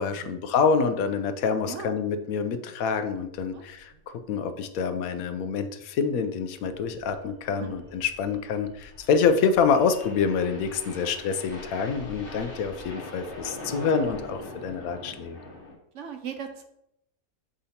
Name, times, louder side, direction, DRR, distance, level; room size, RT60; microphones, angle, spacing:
voice 1, 0.0-15.4, left 5 dB, 75° left, 9 dB, 1.0 m, -26 dB
voice 2, 3.5-4.0 7.6-7.7 10.9-11.1 13.7-13.9 15.9-16.6, right 7 dB, 65° right, 6 dB, 0.8 m, -39 dB
sound 1, 3.8-3.9 4.2-4.3 4.8-5.1 6.4-15.8, left 2 dB, 40° left, 1.1 m, -42 dB
6.9 x 5.0 x 2.8 m, 0.80 s
omnidirectional pair, 1.5 m